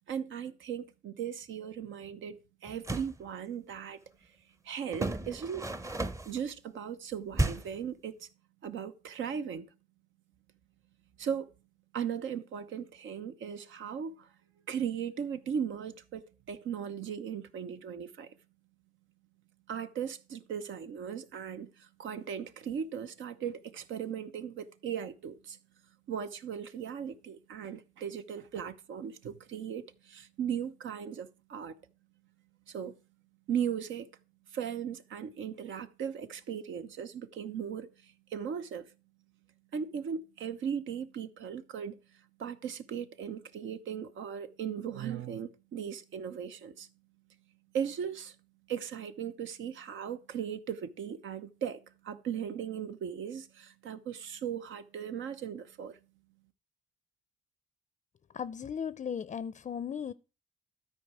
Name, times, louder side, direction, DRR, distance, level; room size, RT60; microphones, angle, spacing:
voice 1, 0.1-4.0 4.6-5.7 6.2-8.3 8.6-9.7 11.2-11.5 11.9-14.3 14.7-18.3 19.7-25.6 26.1-31.8 32.7-32.9 33.5-34.1 34.5-38.9 39.7-42.0 42.4-46.9 47.7-48.3 48.7-56.0, right 8 dB, 75° right, 1.0 m, -37 dB
sound 1, 2.7-3.2 4.9-6.4 7.3-7.8, right 2 dB, 15° right, 0.7 m, -33 dB
voice 2, 58.3-60.1, left 7 dB, 35° left, 0.5 m, -36 dB
12.5 x 4.6 x 6.1 m
cardioid pair, 90°, 20 cm